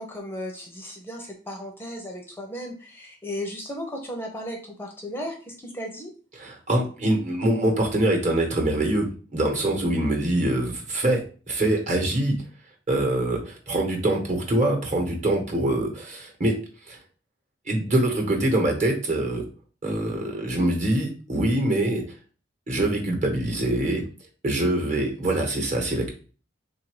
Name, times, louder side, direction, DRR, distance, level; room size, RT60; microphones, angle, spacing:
voice 1, 0.0-6.1, equal, 10° left, 1 dB, 0.6 m, -35 dB
voice 2, 6.4-12.4 12.9-16.6 16.9-17.0 17.7-19.4 19.8-22.0 22.7-24.0 24.4-26.1, right 1 dB, 40° right, 2 dB, 1.1 m, -24 dB
3.7 x 2.6 x 4.7 m, 0.38 s
head